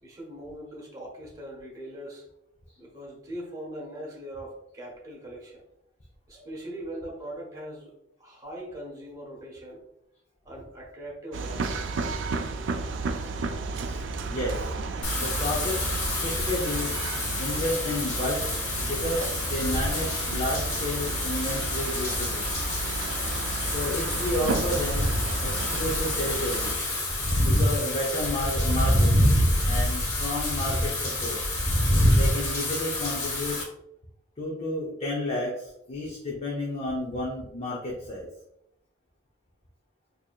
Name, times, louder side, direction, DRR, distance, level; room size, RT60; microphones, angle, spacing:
voice 1, 0.0-2.3 2.8-5.6 6.3-7.9 8.2-9.8 10.4-11.9 13.1-13.3, right 1 dB, 20° right, -3 dB, 1.1 m, -41 dB
sound 1, 11.3-26.8, right 3 dB, 70° right, 0.4 m, -33 dB
voice 2, 14.3-14.7 15.1-15.9 16.2-16.9 17.4-18.5 18.8-22.7 23.7-25.1 25.4-26.9 27.4-29.3 29.7-31.4 32.1-33.6 34.4-38.3, left 1 dB, 35° left, -3 dB, 0.6 m, -31 dB
Wind / Rain, 15.0-33.6, left 1 dB, 75° left, 1.3 m, -27 dB
4.5 x 2.7 x 2.3 m, 0.81 s
head